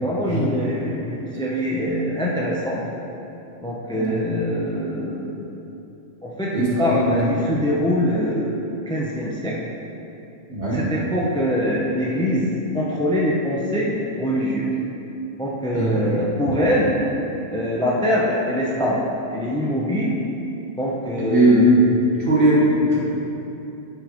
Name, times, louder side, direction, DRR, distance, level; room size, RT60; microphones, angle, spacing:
voice 1, 0.0-2.8 3.6-5.4 6.2-8.5 8.9-9.6 10.6-14.7 15.4-16.9 17.5-19.0 19.3-20.2 20.8-21.7, equal, 5° left, -4 dB, 0.5 m, -23 dB
voice 2, 6.5-7.5 10.5-10.9 15.7-16.0 21.2-23.0, right 1 dB, 45° right, -6 dB, 1.7 m, -19 dB
11.0 x 5.5 x 3.1 m, 2.9 s
omnidirectional pair, 1.3 m